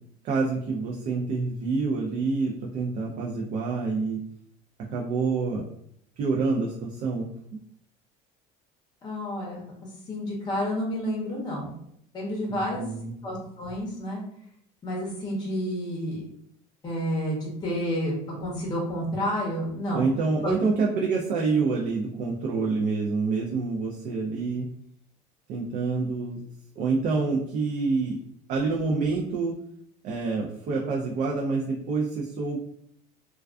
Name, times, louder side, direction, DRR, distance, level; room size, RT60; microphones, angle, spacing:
voice 1, 0.2-4.2 4.9-5.6 6.2-7.3 12.5-13.2 19.9-24.7 25.5-26.4 26.8-28.2 28.5-29.5 30.0-32.6, right 4 dB, 50° right, -2 dB, 0.4 m, -27 dB
voice 2, 9.0-9.6 10.1-11.7 12.1-12.8 13.2-14.2 14.8-16.2 16.8-18.1 18.4-20.1 20.4-20.8, equal, 25° left, -3 dB, 0.7 m, -30 dB
2.3 x 2.2 x 2.4 m, 0.69 s
cardioid pair, 130°, 17 cm